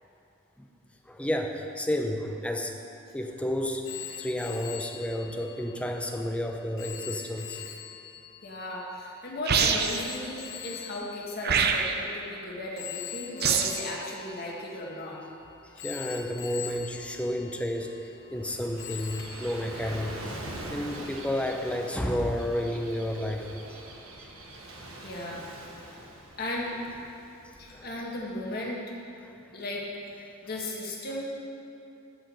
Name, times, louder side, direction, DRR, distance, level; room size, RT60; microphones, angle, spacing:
voice 1, 1.1-2.7 3.1-3.9 4.2-7.6 15.8-20.4 20.7-23.4 24.2-24.3 25.9-26.1 27.7-27.9 29.2-29.3, left 1 dB, 5° left, 2 dB, 0.7 m, -31 dB
Telephone, 3.8-12.2 12.8-15.3 15.8-18.5 18.8-20.5, left 10 dB, 70° left, 0.9 m, -43 dB
voice 2, 8.4-15.2 25.0-25.5 26.4-26.7 27.6-28.8 29.5-30.1 30.4-31.3, left 1 dB, 50° left, -3 dB, 1.8 m, -36 dB
sound 1, 9.5-10.1 11.4-12.1 13.4-13.9, right 6 dB, 50° right, 0.6 m, -25 dB
Gull seagull / Waves surf, 17.9-28.5, right 1 dB, 80° right, 1.2 m, -43 dB
11.5 x 5.0 x 7.8 m, 2.9 s
head